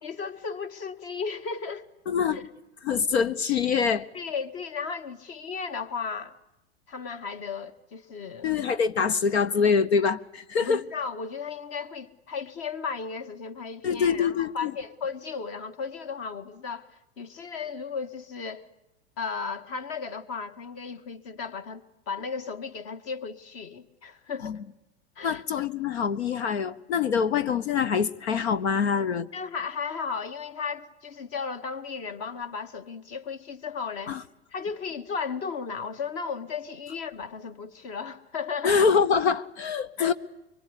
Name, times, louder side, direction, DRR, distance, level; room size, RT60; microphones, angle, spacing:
voice 1, 0.0-1.8 2.3-2.4 4.1-6.4 6.9-8.5 10.6-18.7 19.2-24.6 25.2-25.4 29.3-34.2 34.5-38.8 40.0-40.1, left 5 dB, 45° left, 2.0 m, -35 dB
voice 2, 2.1-2.4 2.8-4.1 8.4-10.8 13.8-14.7 24.4-24.6 25.2-29.3 34.1-34.2 38.6-40.1, left 6 dB, 70° left, 1.1 m, -25 dB
24.0 x 23.5 x 10.0 m
figure-of-eight pair, 90°, 33 cm